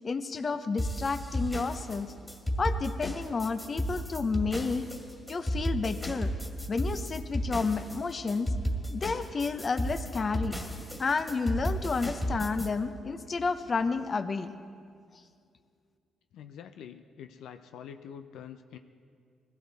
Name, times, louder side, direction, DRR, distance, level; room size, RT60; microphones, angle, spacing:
voice 1, 0.0-2.1 2.6-4.9 5.3-6.3 6.7-8.5 8.9-10.6 11.0-14.5, left 4 dB, 35° left, 10 dB, 0.8 m, -31 dB
sound 1, 0.8-12.7, equal, 10° left, 2.2 m, -33 dB
voice 2, 16.3-18.8, left 8 dB, 80° left, 7 dB, 0.5 m, -46 dB
21.0 x 15.5 x 4.1 m, 2.3 s
cardioid pair, 90°, 0 cm